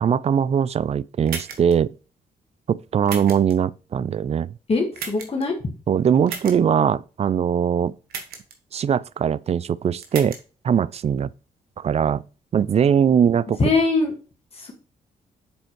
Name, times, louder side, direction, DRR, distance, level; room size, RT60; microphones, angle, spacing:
voice 1, 0.0-1.9 2.7-4.5 5.9-7.9 8.7-10.4 10.6-11.3 11.8-12.2 12.5-13.6, right 8 dB, 45° right, 0.4 m, -21 dB
sound 1, 1.3-1.7 3.1-3.5 5.0-5.4 6.3-6.6 8.1-8.5 10.0-10.4, right 6 dB, 85° right, 1.4 m, -34 dB
voice 2, 4.7-5.5 13.6-14.1 14.5-14.7, left 3 dB, 40° left, 1.8 m, -21 dB
7.1 x 4.3 x 4.6 m
cardioid pair, 65°, 15 cm